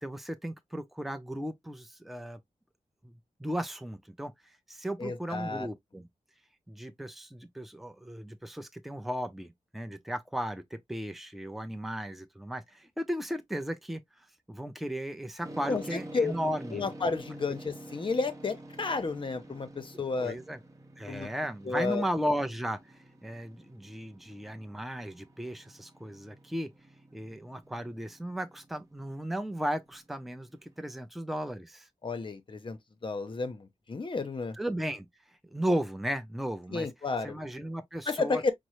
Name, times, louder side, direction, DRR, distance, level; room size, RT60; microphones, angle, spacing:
voice 1, 0.0-2.4 3.0-3.1 3.4-4.3 4.7-6.1 6.7-14.0 14.5-16.9 19.9-20.6 21.0-26.7 27.1-31.9 34.6-35.1 35.5-36.9 37.2-38.5, equal, ahead, 0.5 m, -35 dB
voice 2, 5.0-5.7 15.7-16.3 16.7-20.4 21.1-21.3 21.7-22.1 32.0-34.6 36.7-37.4 38.1-38.5, left 4 dB, 40° left, 0.7 m, -32 dB
sound 1, 15.4-30.9, right 1 dB, 25° right, 0.9 m, -49 dB
5.2 x 2.0 x 3.0 m
wide cardioid pair, 140°, 13 cm